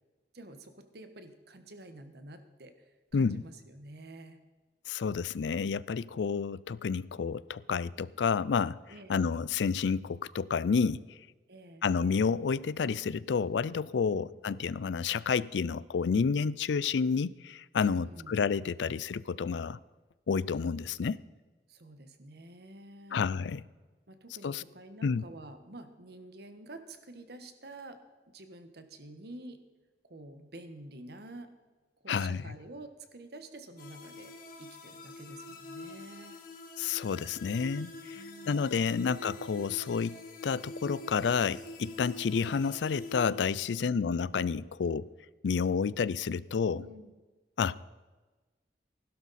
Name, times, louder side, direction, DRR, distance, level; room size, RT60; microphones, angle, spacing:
voice 1, 0.3-4.4 8.9-9.2 11.5-11.8 14.1-14.3 17.9-18.4 21.7-23.2 24.1-28.0 28.3-29.6 30.0-31.5 32.0-36.4 38.1-39.1 43.7-44.1 46.7-47.1, right 2 dB, 65° right, 8 dB, 1.3 m, -49 dB
voice 2, 3.1-3.4 4.9-8.8 9.1-11.0 11.8-19.8 20.3-21.2 23.1-23.6 24.4-24.6 25.0-25.2 32.1-32.4 36.8-45.1 45.4-46.8 47.6-47.8, left 5 dB, 85° left, 19 dB, 0.4 m, -30 dB
sound 1, 33.8-43.3, left 2 dB, 55° left, 1.9 m, -46 dB
16.0 x 12.0 x 4.2 m, 1.2 s
head